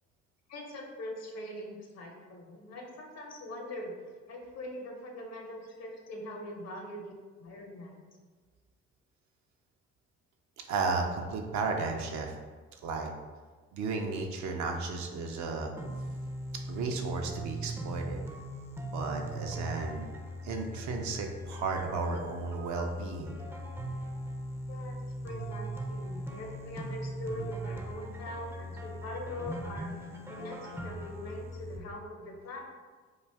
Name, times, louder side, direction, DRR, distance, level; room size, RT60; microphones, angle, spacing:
voice 1, 0.5-3.9 4.3-7.1 7.4-8.0 24.7-25.0 25.2-29.9 30.3-32.6, left 1 dB, 50° left, 1 dB, 0.7 m, -42 dB
voice 2, 10.6-12.4 12.8-13.1 13.7-15.7 16.7-18.2 18.9-20.1 20.4-23.4, right 4 dB, 60° right, 2 dB, 0.5 m, -34 dB
sound 1, 15.8-31.8, right 1 dB, 10° right, 0.4 m, -39 dB
2.5 x 2.3 x 3.3 m, 1.4 s
hypercardioid pair, 50°, 33 cm